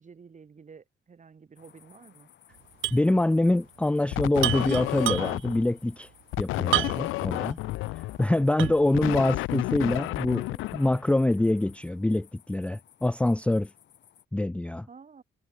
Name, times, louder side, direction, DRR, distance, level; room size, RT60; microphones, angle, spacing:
voice 1, 0.0-2.3 8.4-8.5 14.9-15.2, right 5 dB, 40° right, 3.9 m, -51 dB
sound 1, 1.6-14.2, left 10 dB, 65° left, 2.9 m, -58 dB
sound 2, 2.8-3.1 3.4-3.5 4.4-5.5 6.7-7.2 7.7-7.8 8.6-9.0, right 15 dB, 80° right, 0.8 m, -29 dB
voice 2, 2.9-6.1 6.4-7.6 8.2-13.7 14.3-14.9, left 1 dB, 5° left, 0.5 m, -25 dB
sound 3, 4.1-5.7 6.3-11.5, left 19 dB, 90° left, 0.4 m, -31 dB
cardioid pair, 90°, 20 cm